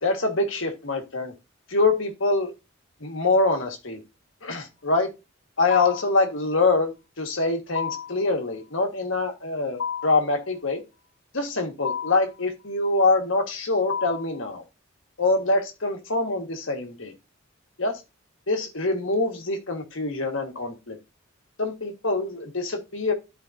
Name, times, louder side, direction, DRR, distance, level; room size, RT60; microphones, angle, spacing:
voice 1, 0.0-1.3 1.7-2.5 3.0-4.0 4.4-5.1 5.6-10.8 11.3-14.6 15.2-17.1 17.8-18.0 18.5-21.0 21.6-23.1, left 3 dB, 70° left, 1.8 m, -25 dB
sound 1, 5.7-6.2 7.7-8.2 9.8-10.3 11.8-12.3 13.9-14.4, left 7 dB, 90° left, 1.6 m, -31 dB
13.0 x 5.0 x 2.7 m
head